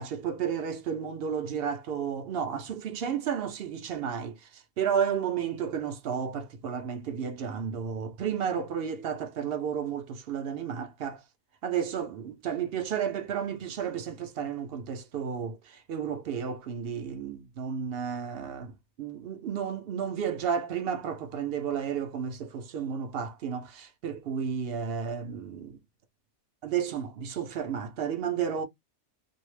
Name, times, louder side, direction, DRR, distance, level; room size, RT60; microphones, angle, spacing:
voice 1, 0.0-11.2 11.6-18.7 19.0-25.8 26.6-28.6, right 7 dB, 65° right, 0.6 m, -32 dB
2.6 x 2.0 x 3.1 m
omnidirectional pair, 1.4 m